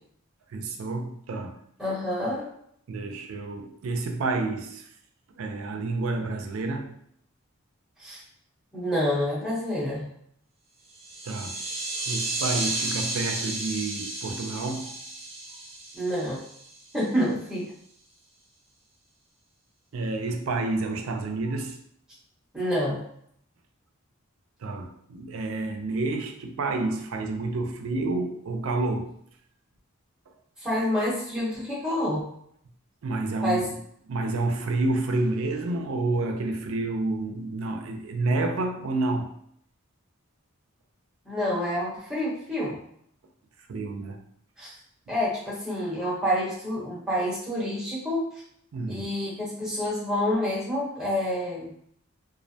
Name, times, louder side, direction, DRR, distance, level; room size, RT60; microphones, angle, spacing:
voice 1, 0.5-1.6 2.9-4.9 5.4-7.0 11.2-11.6 12.1-15.0 19.9-21.8 24.6-29.2 30.3-30.4 33.0-33.7 34.1-39.3 43.7-44.2 48.7-49.1, right 2 dB, 75° right, 0.4 m, -29 dB
voice 2, 1.8-2.5 8.0-8.2 8.7-10.1 15.9-16.4 16.9-17.7 22.5-23.0 30.6-32.2 33.4-33.6 41.2-42.8 44.6-44.7 45.1-48.3 48.9-51.7, equal, 5° right, 0.9 m, -28 dB
sound 1, 10.9-17.0, right 2 dB, 30° right, 0.5 m, -33 dB
2.4 x 2.1 x 2.7 m
head